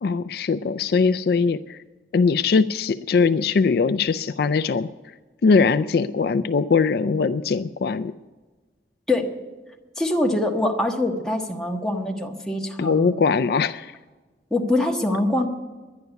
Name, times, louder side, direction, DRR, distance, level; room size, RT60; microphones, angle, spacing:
voice 1, 0.0-1.8 2.1-4.9 5.4-8.1 12.8-13.9, left 5 dB, 55° left, 11 dB, 0.4 m, -21 dB
voice 2, 10.0-13.5 14.5-15.5, left 1 dB, 5° left, -1 dB, 1.3 m, -24 dB
11.0 x 10.5 x 8.0 m, 1.3 s
head